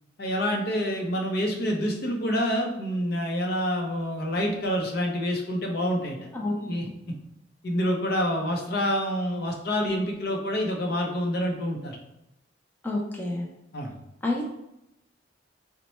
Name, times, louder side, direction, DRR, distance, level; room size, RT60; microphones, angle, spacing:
voice 1, 0.2-6.3 6.6-6.9 7.6-12.0 13.7-13.9, equal, 60° left, 2 dB, 0.7 m, -27 dB
voice 2, 12.8-13.5 14.2-14.5, left 2 dB, 10° left, -2 dB, 0.4 m, -28 dB
4.1 x 2.1 x 3.0 m, 0.88 s
head